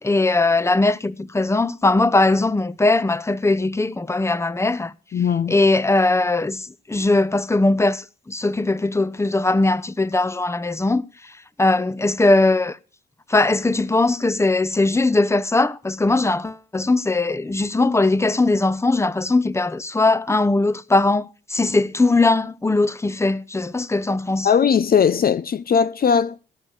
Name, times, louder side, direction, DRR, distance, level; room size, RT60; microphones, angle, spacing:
voice 1, 0.0-4.9 5.5-11.3 11.6-12.8 13.3-24.5, left 2 dB, 15° left, 0.8 m, -20 dB
voice 2, 5.1-5.5 24.4-26.5, left 7 dB, 50° left, 0.6 m, -19 dB
13.5 x 8.5 x 6.6 m
supercardioid pair, 45°, 20 cm